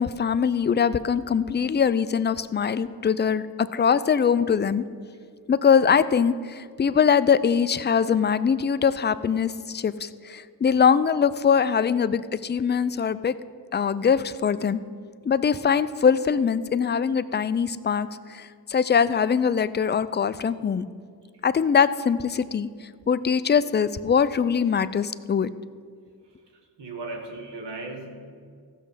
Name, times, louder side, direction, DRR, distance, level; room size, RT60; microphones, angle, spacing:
voice 1, 0.0-4.8 5.5-13.4 13.7-14.8 15.2-20.9 21.4-22.7 23.1-25.5, left 7 dB, 25° left, 14 dB, 0.4 m, -22 dB
voice 2, 26.8-28.2, right 2 dB, 75° right, 3 dB, 1.6 m, -36 dB
14.5 x 6.3 x 5.5 m, 2.1 s
cardioid pair, 50°, 43 cm